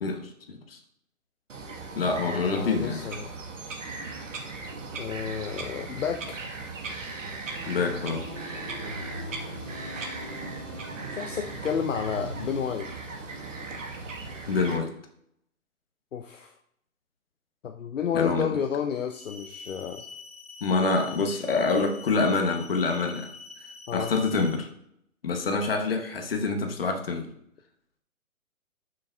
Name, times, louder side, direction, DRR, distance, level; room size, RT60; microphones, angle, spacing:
voice 1, 0.0-0.8 1.9-3.1 7.7-8.3 14.5-14.9 18.1-18.6 20.6-23.3 23.9-24.7 25.2-27.3, left 4 dB, 40° left, 0.9 m, -26 dB
Bird vocalization bird call bird song, 1.5-14.8, right 3 dB, 60° right, 1.3 m, -38 dB
voice 2, 2.1-3.3 5.0-6.4 11.0-12.9 16.1-16.5 17.6-20.0 23.9-24.1, left 7 dB, 60° left, 0.6 m, -31 dB
sound 1, 6.9-12.6, equal, 15° left, 1.4 m, -41 dB
sound 2, 19.1-24.6, left 4 dB, 75° left, 1.4 m, -45 dB
11.0 x 6.3 x 2.2 m
hypercardioid pair, 165°, 44 cm